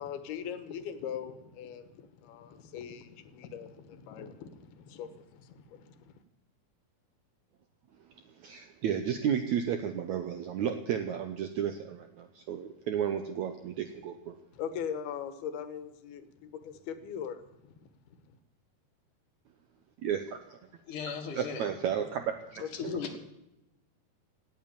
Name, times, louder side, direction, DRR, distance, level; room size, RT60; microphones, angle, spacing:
voice 1, 0.0-6.1 14.5-18.4 22.6-23.2, left 8 dB, 85° left, 11 dB, 3.1 m, -41 dB
voice 2, 8.4-14.4 20.0-20.6 21.3-23.0, right 8 dB, 75° right, 7 dB, 1.7 m, -33 dB
voice 3, 20.9-21.7 22.7-23.2, left 6 dB, 60° left, 5 dB, 3.1 m, -36 dB
18.0 x 8.7 x 8.7 m, 0.93 s
omnidirectional pair, 4.4 m